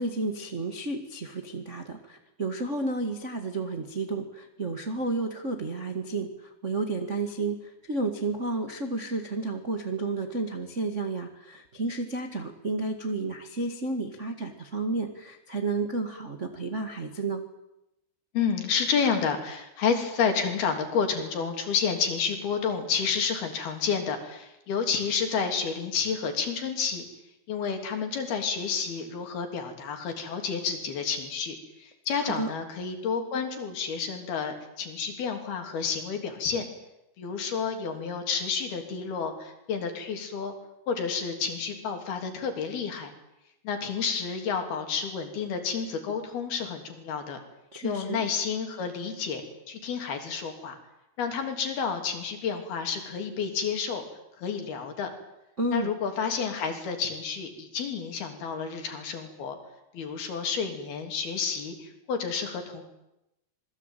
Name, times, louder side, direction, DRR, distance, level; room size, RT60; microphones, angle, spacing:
voice 1, 0.0-6.3 6.6-7.6 7.9-17.4 32.2-32.5 47.7-48.2 55.6-55.9, right 3 dB, 55° right, 4 dB, 0.7 m, -31 dB
voice 2, 18.3-27.0 27.5-36.7 37.2-40.5 40.9-43.1 43.6-47.4 47.8-50.8 51.2-54.0 54.4-55.1 55.7-59.6 59.9-62.8, left 6 dB, 60° left, 5 dB, 5.1 m, -30 dB
26.5 x 21.0 x 9.2 m, 0.90 s
omnidirectional pair, 5.1 m